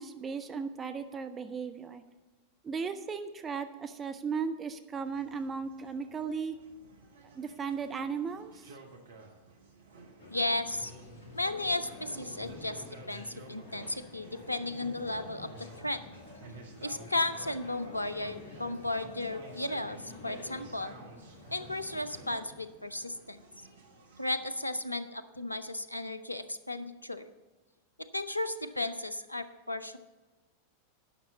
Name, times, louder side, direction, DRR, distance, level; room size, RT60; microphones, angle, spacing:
voice 1, 0.0-2.0 2.6-6.6 7.3-8.8, right 5 dB, 20° right, 8 dB, 0.5 m, -36 dB
sound 1, 4.9-24.4, right 3 dB, 65° right, 1.3 m, -55 dB
sound 2, 10.2-22.5, left 1 dB, 55° left, 2.0 m, -48 dB
voice 2, 10.3-10.9 11.3-15.5 15.8-16.0 16.8-20.9 21.5-23.4 24.2-27.2 28.1-30.0, left 2 dB, 85° left, 13 dB, 0.5 m, -34 dB
10.0 x 6.1 x 6.8 m, 1.2 s
figure-of-eight pair, 90°, 0 cm